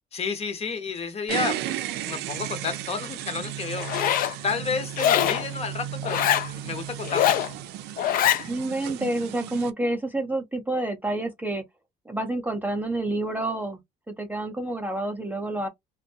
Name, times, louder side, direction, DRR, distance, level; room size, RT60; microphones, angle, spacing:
voice 1, 0.1-7.5, left 5 dB, 40° left, 0.8 m, -31 dB
sound 1, 1.3-9.7, right 11 dB, 80° right, 0.4 m, -34 dB
Zipper (clothing), 3.8-4.3 5.0-5.4 6.0-6.5 7.0-7.5 8.0-8.4, left 11 dB, 55° left, 0.4 m, -23 dB
voice 2, 8.5-11.6 12.1-13.8 14.1-15.7, right 2 dB, 10° right, 0.5 m, -28 dB
2.5 x 2.2 x 2.6 m
cardioid pair, 110°, 17 cm